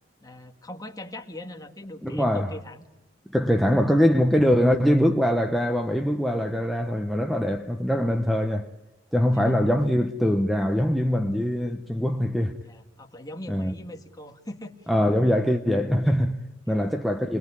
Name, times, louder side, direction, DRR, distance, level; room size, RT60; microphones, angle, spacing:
voice 1, 0.2-2.8 9.3-9.5 12.6-14.9 16.7-16.9, left 1 dB, 20° left, 1.9 m, -41 dB
voice 2, 2.0-2.6 3.3-8.7 9.1-12.5 13.5-13.7 14.9-17.4, equal, ahead, 0.9 m, -23 dB
28.5 x 21.0 x 9.9 m
head